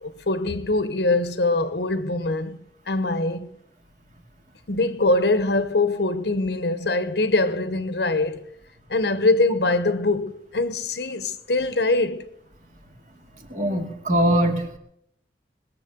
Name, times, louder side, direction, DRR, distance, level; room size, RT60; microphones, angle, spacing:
voice 1, 0.0-2.6 2.9-3.5 4.7-8.4 8.9-12.2, left 2 dB, 70° left, 1.0 m, -23 dB
voice 2, 13.5-14.8, right 1 dB, 45° right, 2.3 m, -22 dB
21.0 x 7.5 x 6.9 m
head